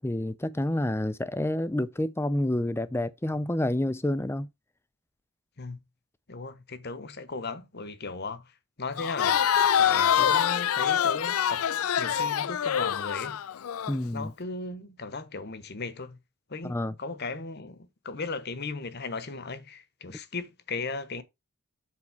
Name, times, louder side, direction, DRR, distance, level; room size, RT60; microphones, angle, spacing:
voice 1, 0.0-4.5 13.9-14.3 16.6-16.9, left 1 dB, 10° left, 0.5 m, -28 dB
voice 2, 6.3-8.4 8.8-11.7 12.0-13.4 14.1-16.2 16.5-21.2, left 3 dB, 45° left, 1.0 m, -37 dB
Crowd, 9.0-13.9, left 9 dB, 70° left, 0.4 m, -25 dB
7.3 x 4.3 x 5.8 m
head